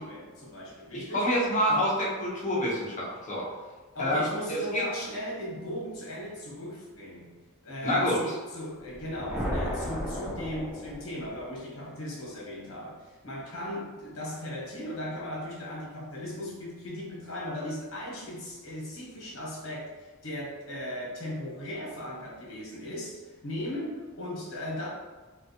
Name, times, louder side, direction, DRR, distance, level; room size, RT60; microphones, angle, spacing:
voice 1, 0.0-1.3 1.7-1.9 3.9-7.3 7.6-24.9, left 1 dB, 60° left, -4 dB, 1.2 m, -37 dB
voice 2, 0.9-3.5 4.0-4.8 7.8-8.2, equal, 35° left, -5 dB, 0.8 m, -27 dB
sound 1, 8.9-11.5, equal, 5° right, 0.4 m, -34 dB
3.8 x 2.3 x 2.8 m, 1.3 s
head